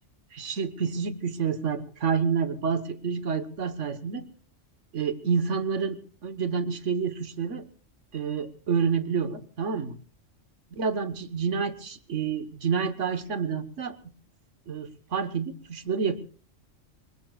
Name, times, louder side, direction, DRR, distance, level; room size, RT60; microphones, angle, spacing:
voice 1, 0.3-4.2 4.9-7.6 8.1-10.0 10.7-14.0 14.7-16.2, right 6 dB, 70° right, 12 dB, 1.7 m, -28 dB
24.5 x 21.0 x 2.4 m, 0.40 s
omnidirectional pair, 1.3 m